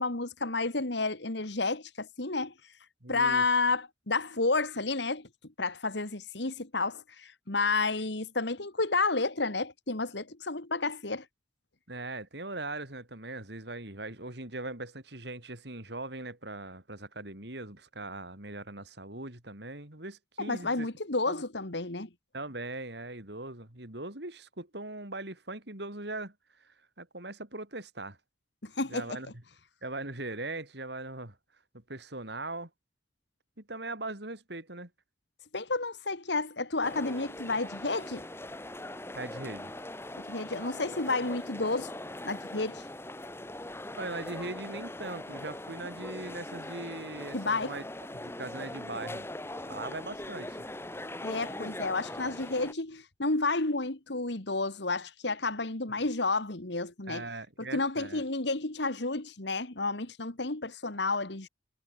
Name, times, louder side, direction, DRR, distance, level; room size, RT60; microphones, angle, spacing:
voice 1, 0.0-2.5 3.1-11.3 20.4-22.1 28.6-29.2 35.5-38.3 40.2-41.9 42.2-42.8 47.3-47.7 51.2-57.3 57.7-61.5, left 3 dB, 65° left, 2.1 m, -31 dB
voice 2, 3.0-3.4 11.9-20.9 21.3-21.4 22.3-28.2 28.9-29.3 29.8-31.4 31.7-32.7 33.6-34.9 39.1-39.7 44.0-47.9 48.1-49.3 49.7-50.7 57.1-58.2, right 2 dB, 60° right, 3.9 m, -40 dB
sound 1, 36.8-52.7, left 1 dB, 15° left, 2.0 m, -41 dB
head